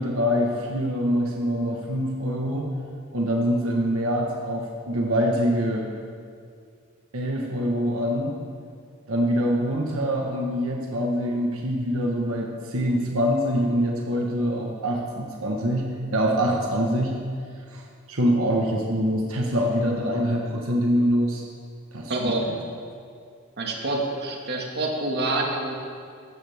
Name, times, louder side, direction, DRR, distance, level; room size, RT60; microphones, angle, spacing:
voice 1, 0.0-2.7 3.1-5.9 7.1-8.3 9.1-17.2 17.7-17.8 18.1-21.4 21.9-22.4, equal, 85° right, -1 dB, 1.4 m, -24 dB
voice 2, 22.1-22.4 23.6-25.7, right 2 dB, 55° right, 0 dB, 1.9 m, -27 dB
14.5 x 14.0 x 3.6 m, 2.3 s
head